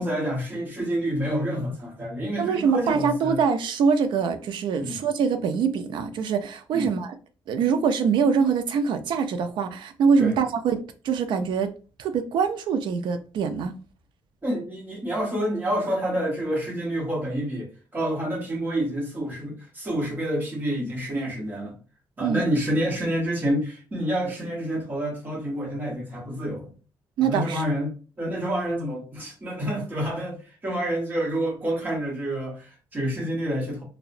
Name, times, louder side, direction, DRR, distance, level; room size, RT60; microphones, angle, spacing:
voice 1, 0.0-3.4 4.8-5.0 6.7-6.9 10.2-10.3 14.4-21.8 22.2-26.7 27.2-27.9 28.2-33.8, equal, 20° right, 0.9 m, -28 dB
voice 2, 2.4-7.1 7.5-11.7 12.0-13.7 22.2-22.5 27.2-27.6, right 6 dB, 70° right, 0.4 m, -24 dB
2.7 x 2.0 x 2.5 m
cardioid pair, 165°, 8 cm